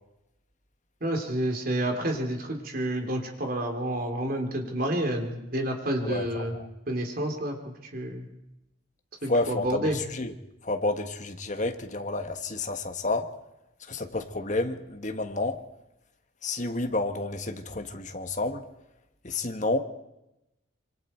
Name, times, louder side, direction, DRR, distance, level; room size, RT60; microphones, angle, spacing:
voice 1, 1.0-6.6 6.9-8.3 9.2-10.0, right 1 dB, 50° right, 3.4 m, -29 dB
voice 2, 6.0-6.5 9.3-10.3 10.6-13.3 13.9-15.6 16.4-18.6 19.2-19.8, left 2 dB, 40° left, 1.6 m, -30 dB
26.0 x 25.0 x 4.5 m
head